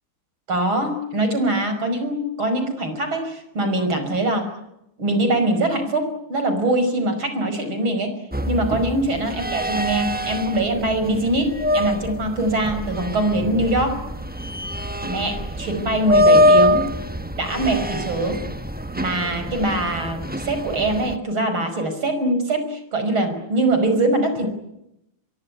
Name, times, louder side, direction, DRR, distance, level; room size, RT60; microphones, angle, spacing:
voice 1, 0.5-4.5 5.0-8.2 8.5-14.0 15.0-16.9 17.4-18.4 19.0-24.5, right 1 dB, 70° right, 8 dB, 6.2 m, -23 dB
sound 1, 8.3-21.1, left 1 dB, 15° right, 0.4 m, -23 dB
25.0 x 23.0 x 9.7 m, 0.83 s
omnidirectional pair, 2.3 m